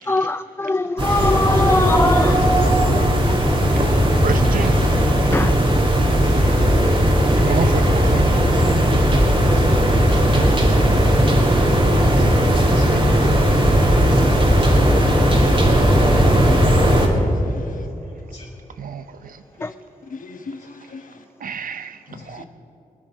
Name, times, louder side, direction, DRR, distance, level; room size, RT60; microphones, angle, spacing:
voice 1, 0.1-2.4 5.3-5.5 19.6-19.7, left 2 dB, 15° left, 13 dB, 0.3 m, -21 dB
sound 1, 1.0-17.1, equal, 35° right, 2.8 m, -16 dB
voice 2, 2.5-2.9 3.4-3.5 6.2-6.5 8.5-8.6 9.5-9.8 11.2-11.3 11.8-12.2 12.7-13.0 18.3-18.5, left 2 dB, 35° left, -6 dB, 4.1 m, -44 dB
voice 3, 4.2-4.7 7.4-8.3 18.8-19.0 21.4-21.9 22.3-22.4, right 6 dB, 75° right, 11 dB, 0.6 m, -27 dB
voice 4, 14.0-14.6 15.0-15.7 16.4-17.8 19.6-19.7 20.1-21.2 22.1-22.5, left 4 dB, 65° left, 8 dB, 1.2 m, -39 dB
21.0 x 9.8 x 6.3 m, 2.8 s
cardioid pair, 65°, 15 cm